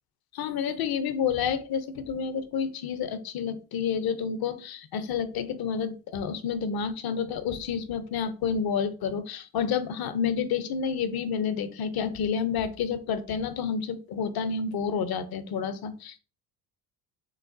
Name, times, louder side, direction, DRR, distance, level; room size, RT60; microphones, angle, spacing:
voice 1, 0.3-16.2, left 7 dB, 55° left, 12 dB, 0.7 m, -29 dB
6.2 x 2.4 x 2.6 m, 0.35 s
cardioid pair, 100°, 45 cm